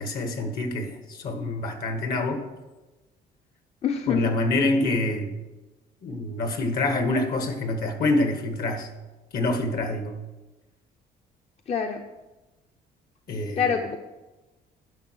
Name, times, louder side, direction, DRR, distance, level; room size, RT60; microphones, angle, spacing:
voice 1, 0.0-2.4 4.1-5.3 6.0-8.9 9.3-10.2 13.3-13.6, left 2 dB, 60° left, 6 dB, 1.7 m, -26 dB
voice 2, 3.8-4.4 11.7-12.0 13.6-14.0, left 7 dB, 40° left, 5 dB, 0.7 m, -26 dB
10.5 x 6.1 x 6.3 m, 1.1 s
cardioid pair, 110°, 17 cm